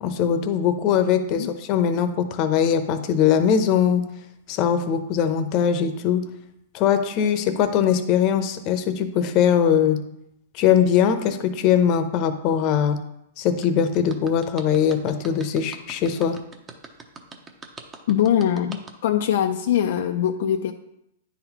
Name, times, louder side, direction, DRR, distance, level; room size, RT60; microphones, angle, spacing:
voice 1, 0.0-4.1 4.5-6.2 6.7-10.0 10.5-13.0 13.4-16.4, left 8 dB, 40° left, 9 dB, 0.7 m, -21 dB
sound 1, 13.6-18.9, right 4 dB, 20° right, 0.8 m, -42 dB
voice 2, 18.1-20.7, left 10 dB, 70° left, 5 dB, 0.4 m, -22 dB
9.9 x 4.0 x 3.0 m, 0.80 s
hypercardioid pair, 130°, 0 cm